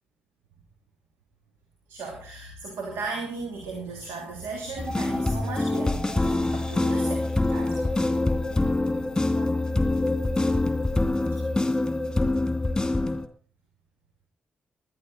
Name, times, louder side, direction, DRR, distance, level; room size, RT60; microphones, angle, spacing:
voice 1, 1.9-8.1 9.3-9.5 11.0-11.5, right 3 dB, 80° right, 2 dB, 3.0 m, -37 dB
sound 1, 4.8-13.3, left 2 dB, 15° left, 2.5 m, -25 dB
20.0 x 11.5 x 4.3 m, 0.40 s
hypercardioid pair, 40°, 4 cm